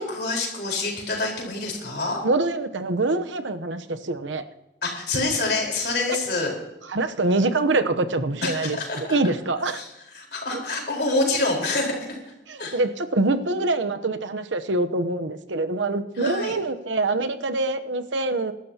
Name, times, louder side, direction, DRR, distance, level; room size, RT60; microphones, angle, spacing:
voice 1, 0.0-2.2 4.8-6.5 8.4-9.0 9.7-9.9 10.1-12.2 12.6-12.8 16.2-16.6, left 2 dB, 60° left, 0 dB, 4.4 m, -26 dB
voice 2, 2.2-4.4 6.1-6.2 6.9-9.8 10.5-10.6 12.5-18.5, right 2 dB, 90° right, 9 dB, 0.9 m, -25 dB
23.0 x 12.5 x 2.9 m, 0.98 s
head